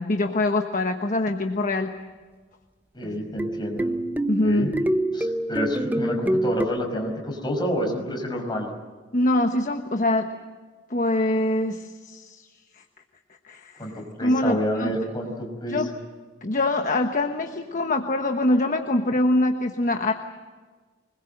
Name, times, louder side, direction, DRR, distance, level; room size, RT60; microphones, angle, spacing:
voice 1, 0.0-1.9 4.3-4.7 9.1-10.3 10.9-12.5 12.8-12.9 13.4-13.8 14.2-14.9 15.7-15.9 16.4-20.1, left 1 dB, 40° left, 5 dB, 1.2 m, -24 dB
voice 2, 2.9-3.9 4.4-4.7 5.1-8.7 13.8-15.8, equal, 25° left, 2 dB, 5.5 m, -28 dB
sound 1, 3.0-6.7, right 1 dB, 10° right, 0.9 m, -26 dB
25.0 x 21.0 x 7.8 m, 1.4 s
head